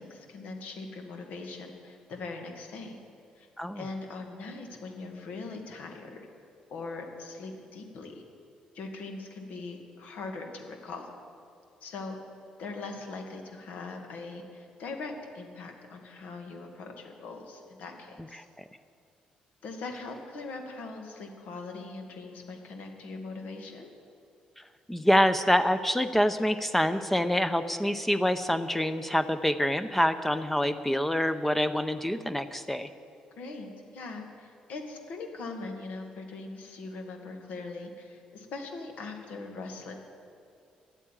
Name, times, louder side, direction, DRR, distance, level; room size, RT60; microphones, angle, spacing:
voice 1, 0.0-3.0 3.4-3.5 3.8-6.2 6.7-8.2 8.7-11.1 11.8-12.2 12.6-18.5 19.6-23.9 33.4-39.9, left 3 dB, 75° left, 3 dB, 1.9 m, -41 dB
voice 2, 24.9-32.9, equal, 10° left, 10 dB, 0.5 m, -26 dB
11.0 x 8.4 x 9.0 m, 2.5 s
cardioid pair, 85°, 3 cm